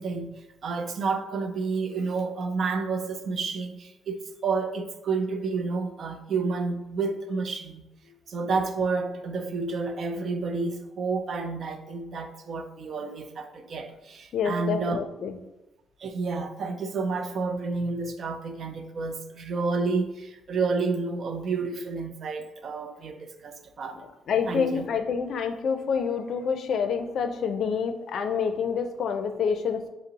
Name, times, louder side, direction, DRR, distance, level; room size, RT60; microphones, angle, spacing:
voice 1, 0.0-7.8 8.3-15.0 16.0-24.0 24.5-24.9, right 4 dB, 55° right, 0.4 m, -30 dB
voice 2, 14.3-15.4 24.3-29.9, left 6 dB, 65° left, 0.4 m, -27 dB
5.3 x 2.0 x 3.9 m
cardioid pair, 90°, 0 cm